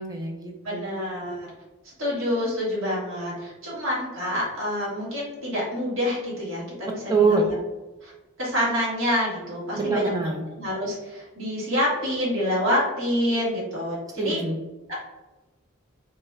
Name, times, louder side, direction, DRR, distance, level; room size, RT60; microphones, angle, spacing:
voice 1, 0.0-1.0 7.1-7.4 9.8-10.5 14.2-14.6, right 4 dB, 20° right, 1 dB, 0.4 m, -24 dB
voice 2, 0.6-1.5 2.0-7.6 8.0-8.1 8.4-10.1 10.6-14.4 14.9-15.0, equal, 70° right, -6 dB, 1.2 m, -27 dB
3.0 x 2.0 x 3.4 m, 1.1 s
head